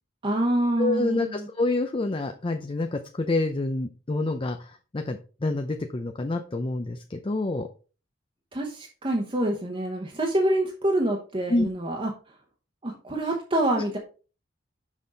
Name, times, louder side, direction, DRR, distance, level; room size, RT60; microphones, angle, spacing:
voice 1, 0.2-1.5 8.5-12.1 12.8-14.0, right 1 dB, 30° right, 1 dB, 1.0 m, -26 dB
voice 2, 0.8-7.7 11.5-11.7, left 2 dB, 30° left, 6 dB, 0.5 m, -27 dB
6.3 x 5.5 x 3.9 m, 0.36 s
head